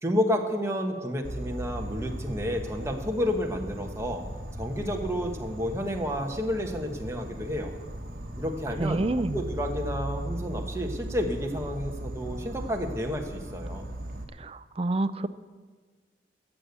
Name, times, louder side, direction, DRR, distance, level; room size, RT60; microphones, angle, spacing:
voice 1, 0.0-4.2 4.6-7.7 8.4-13.8, left 1 dB, 15° right, 2 dB, 1.2 m, -30 dB
Insect, 1.2-14.2, right 1 dB, 55° right, 1.4 m, -38 dB
voice 2, 8.8-9.4 14.4-15.3, right 2 dB, 30° right, 12 dB, 0.5 m, -28 dB
14.5 x 6.9 x 8.2 m, 1.4 s
head